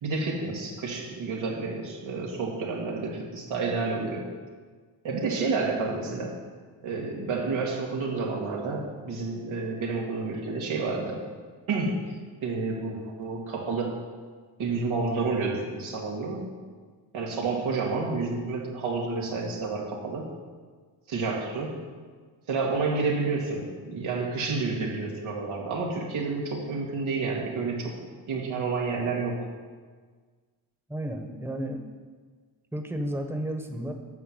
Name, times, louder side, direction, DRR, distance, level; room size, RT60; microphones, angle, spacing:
voice 1, 0.0-4.3 5.0-6.4 6.8-11.2 11.7-11.9 12.4-14.0 14.6-16.5 17.1-20.3 21.1-21.8 22.5-28.0 28.3-29.5, right 4 dB, 90° right, -2 dB, 2.0 m, -30 dB
voice 2, 30.9-31.8 32.7-33.9, right 1 dB, 5° right, 4 dB, 1.1 m, -32 dB
9.1 x 5.8 x 7.5 m, 1.5 s
cardioid pair, 65°, 47 cm